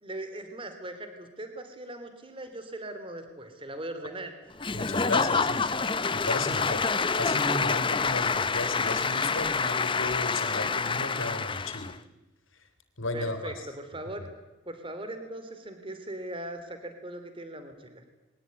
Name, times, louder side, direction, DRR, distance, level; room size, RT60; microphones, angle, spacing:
voice 1, 0.0-4.3 13.1-14.3 14.6-18.0, right 1 dB, 25° right, 8 dB, 3.1 m, -39 dB
Applause / Crowd, 4.6-11.9, left 5 dB, 25° left, 0.8 m, -27 dB
voice 2, 4.7-5.7 6.1-6.9 7.2-11.9 12.5-12.7 13.0-13.7, left 2 dB, 90° left, 9 dB, 3.7 m, -34 dB
22.0 x 19.0 x 9.8 m, 1.1 s
head